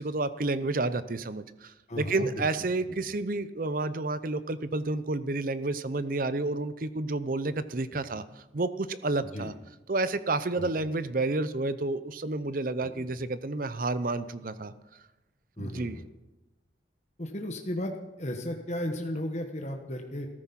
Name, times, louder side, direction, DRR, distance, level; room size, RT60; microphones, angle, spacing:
voice 1, 0.0-9.5 9.9-14.7 15.6-16.0, right 2 dB, 50° right, 14 dB, 0.7 m, -30 dB
voice 2, 1.9-2.5 7.9-8.0 9.3-9.5 10.6-10.7 12.8-13.1 15.6-16.0 17.2-20.3, left 1 dB, 40° left, 3 dB, 1.2 m, -35 dB
14.5 x 13.5 x 5.9 m, 1.0 s
head